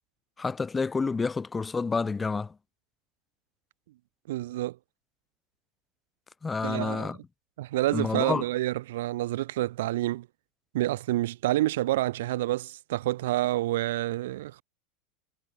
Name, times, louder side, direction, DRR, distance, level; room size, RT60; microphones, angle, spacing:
voice 1, 0.4-2.5 6.4-7.2 7.9-8.4, left 4 dB, 10° left, 2.6 m, -29 dB
voice 2, 4.3-4.8 6.6-7.1 7.6-10.3 10.7-14.6, right 16 dB, 75° right, 0.9 m, -28 dB
supercardioid pair, 170°, 0 cm